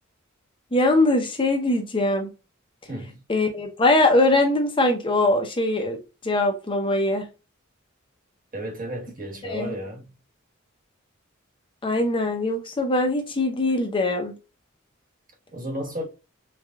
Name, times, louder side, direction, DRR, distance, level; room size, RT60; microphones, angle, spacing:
voice 1, 0.7-2.3 3.3-6.0 6.2-7.3 9.4-9.7 11.8-14.3, left 2 dB, 25° left, 0.6 m, -22 dB
voice 2, 2.9-3.2 8.5-10.1 15.5-16.1, right 1 dB, 45° right, 1.4 m, -33 dB
4.7 x 2.3 x 2.2 m
head